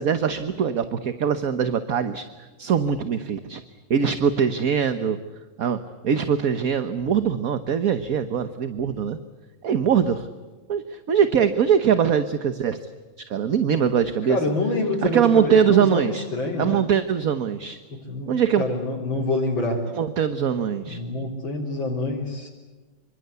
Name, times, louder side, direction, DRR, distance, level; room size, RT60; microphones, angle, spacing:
voice 1, 0.0-3.6 3.9-5.2 5.6-9.2 9.6-10.3 10.7-12.8 13.3-14.4 15.0-16.3 16.6-17.8 18.3-18.6 19.9-21.0, right 7 dB, 50° right, 10 dB, 1.4 m, -22 dB
voice 2, 14.3-16.8 18.1-18.3 18.6-19.8 20.8-22.5, left 2 dB, 80° left, -4 dB, 4.7 m, -26 dB
28.0 x 25.0 x 8.2 m, 1.3 s
omnidirectional pair, 2.1 m